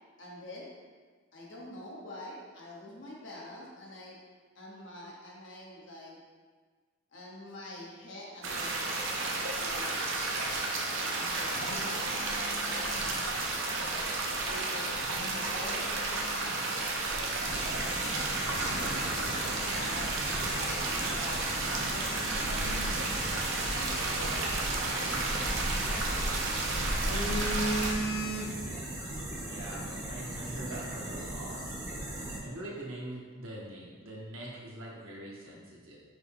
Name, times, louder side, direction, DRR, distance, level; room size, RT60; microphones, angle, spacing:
voice 1, 0.2-0.7 1.3-4.2 4.5-6.2 7.1-8.9 9.2-10.0 11.1-13.8 14.4-15.9 18.5-22.8 23.4-26.0, left 1 dB, 60° left, -5 dB, 1.0 m, -46 dB
sound 1, 8.4-27.9, right 2 dB, 65° right, 0.6 m, -32 dB
Telephone, 11.0-13.6 14.8-16.7 17.3-17.5 18.0-18.1 18.5-20.5 20.8-20.9 21.4-23.8 25.4-26.3 26.7-28.9 29.2-29.4, equal, 90° left, 0.6 m, -39 dB
voice 2, 17.1-18.0 29.3-31.7 32.1-36.0, right 1 dB, 85° right, -4 dB, 1.1 m, -43 dB
sound 2, 17.4-32.4, right 1 dB, 15° right, 1.0 m, -39 dB
6.2 x 2.2 x 3.5 m, 1.5 s
head